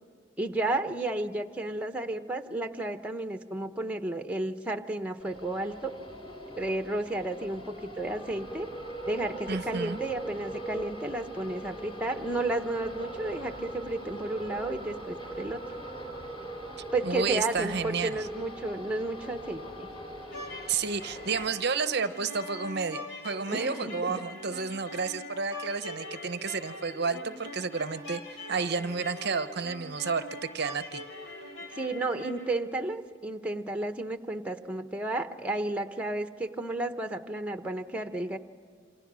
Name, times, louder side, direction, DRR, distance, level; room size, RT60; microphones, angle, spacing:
voice 1, 0.4-5.9 6.6-8.7 9.1-15.6 16.9-19.9 23.5-24.2 31.7-38.4, right 2 dB, 5° right, 7 dB, 0.9 m, -32 dB
sound 1, 5.2-21.5, right 1 dB, 25° left, 3.0 m, -41 dB
voice 2, 9.5-10.0 17.0-18.2 20.7-30.2 30.5-31.0, right 5 dB, 55° right, 11 dB, 0.7 m, -31 dB
sound 2, 20.2-32.5, left 1 dB, 70° left, 3.5 m, -43 dB
28.0 x 27.0 x 6.2 m, 2.2 s
head